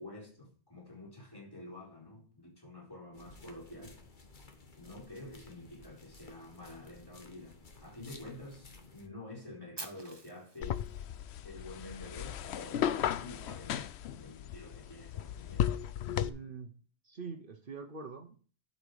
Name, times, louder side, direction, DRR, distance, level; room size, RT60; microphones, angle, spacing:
voice 1, 0.0-4.0 4.8-10.9 11.4-15.9, left 2 dB, 20° left, 4.3 m, -49 dB
sound 1, 3.1-9.1, left 3 dB, 45° left, 1.5 m, -55 dB
Fire, 9.8-11.8, right 2 dB, 25° right, 1.4 m, -48 dB
sound 2, 10.6-16.3, left 10 dB, 75° left, 0.9 m, -35 dB
voice 2, 16.1-16.7 17.0-18.4, right 5 dB, 55° right, 1.1 m, -44 dB
12.5 x 5.4 x 4.9 m
omnidirectional pair, 1.1 m